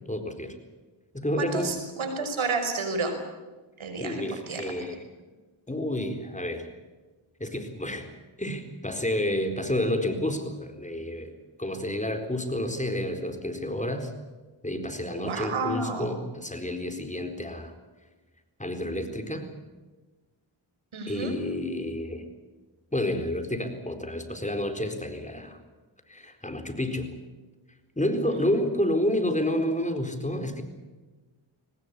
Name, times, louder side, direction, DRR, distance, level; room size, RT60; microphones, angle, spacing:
voice 1, 0.1-0.5 1.1-1.8 4.0-5.0 5.7-6.7 7.4-8.1 8.4-11.3 11.6-14.1 14.6-17.7 18.6-19.5 21.1-22.3 22.9-25.6 26.1-27.1 28.0-30.6, left 1 dB, 15° left, 6 dB, 4.3 m, -30 dB
voice 2, 1.4-3.2 3.8-4.7 15.2-16.1 20.9-21.4 28.3-28.5, right 3 dB, 85° right, 5 dB, 5.7 m, -31 dB
22.0 x 20.0 x 8.4 m, 1.3 s
cardioid pair, 55°, 47 cm